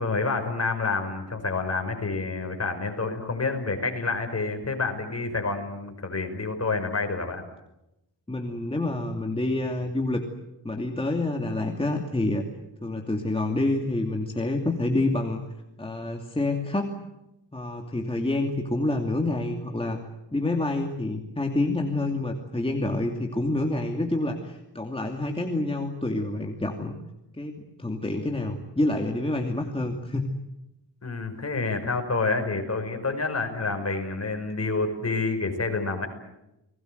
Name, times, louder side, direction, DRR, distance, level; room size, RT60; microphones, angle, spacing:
voice 1, 0.0-7.4 31.0-36.1, left 3 dB, 35° left, 5 dB, 5.7 m, -28 dB
voice 2, 8.3-10.2 10.6-12.4 12.8-15.4 15.8-17.0 17.5-20.0 20.3-26.9 27.3-30.3, left 2 dB, 10° left, 2 dB, 2.7 m, -27 dB
30.0 x 21.0 x 8.1 m, 0.90 s
wide cardioid pair, 90°, 43 cm